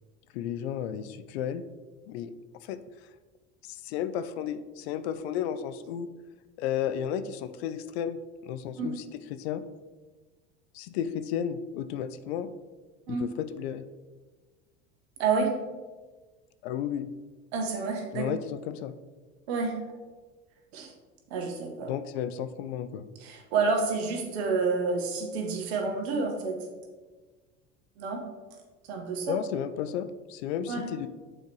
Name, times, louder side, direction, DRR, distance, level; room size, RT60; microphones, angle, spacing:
voice 1, 0.3-1.6 2.1-2.3 2.6-2.8 3.6-6.1 6.6-9.0 9.3-9.6 10.7-12.5 13.1-13.9 16.6-17.1 18.1-18.9 21.9-23.1 29.3-31.1, left 9 dB, 65° left, 12 dB, 0.5 m, -33 dB
voice 2, 15.2-15.5 17.5-18.3 19.5-19.8 20.7-20.9 21.3-21.9 23.2-26.6 28.0-28.2 28.9-29.3 30.7-30.9, right 4 dB, 70° right, 2 dB, 1.3 m, -29 dB
7.6 x 4.3 x 3.1 m, 1.3 s
hypercardioid pair, 75°, 34 cm